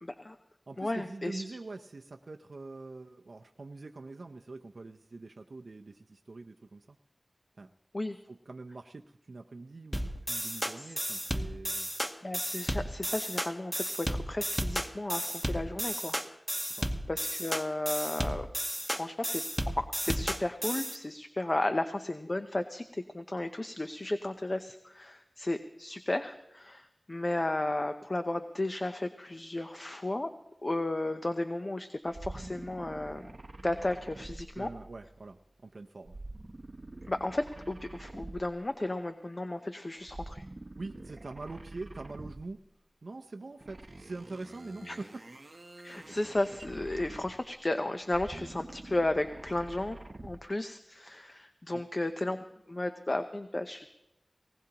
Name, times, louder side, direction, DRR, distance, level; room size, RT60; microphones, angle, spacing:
voice 1, 0.0-0.4 0.8-1.4 7.9-8.2 10.8-10.9 12.2-16.2 17.1-18.5 18.9-30.3 30.6-33.3 33.6-34.7 37.1-40.4 44.8-45.0 45.8-50.0 50.2-52.4 52.7-53.9, left 2 dB, 40° left, 8 dB, 0.7 m, -34 dB
voice 2, 0.7-7.0 7.6-7.7 8.3-11.9 16.7-16.9 34.5-36.2 40.8-42.6 43.0-45.2 51.7-51.8, right 3 dB, 75° right, 4 dB, 0.5 m, -44 dB
sound 1, 9.9-21.0, equal, ahead, 1.0 m, -33 dB
sound 2, 32.1-35.1 36.1-38.8 40.0-42.6 43.6-47.6 48.0-50.5, right 2 dB, 45° right, 0.8 m, -47 dB
20.0 x 18.0 x 2.9 m, 0.88 s
wide cardioid pair, 65°, 0 cm